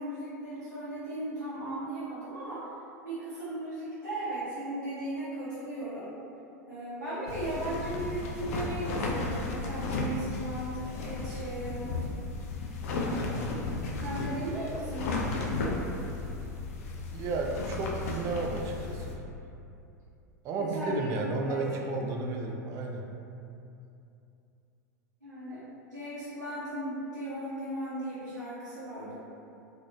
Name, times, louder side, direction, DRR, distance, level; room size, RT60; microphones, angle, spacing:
voice 1, 0.0-2.7 3.0-6.1 6.7-11.9 13.0-13.5 14.0-15.5 20.6-21.6 25.2-25.6 25.9-29.2, right 1 dB, 85° right, -14 dB, 0.8 m, -37 dB
sound 1, 7.3-19.2, left 3 dB, 55° left, 0.4 m, -34 dB
voice 2, 13.2-13.6 17.1-19.2 20.4-23.1, right 3 dB, 35° right, 1 dB, 0.4 m, -33 dB
2.9 x 2.6 x 2.5 m, 2.7 s
figure-of-eight pair, 85°, 9 cm